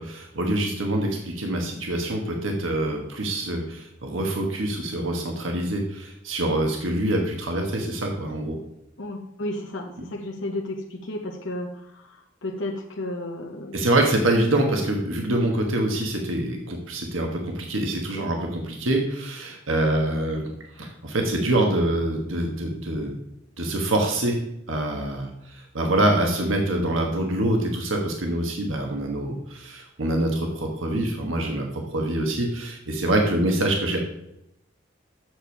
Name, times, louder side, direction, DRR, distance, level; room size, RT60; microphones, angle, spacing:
voice 1, 0.0-8.6 13.7-23.1 23.6-24.4 24.7-34.0, right 1 dB, 90° right, 2 dB, 1.4 m, -25 dB
voice 2, 9.0-13.8, left 1 dB, 70° left, 1 dB, 0.9 m, -33 dB
7.9 x 7.1 x 4.6 m, 0.81 s
head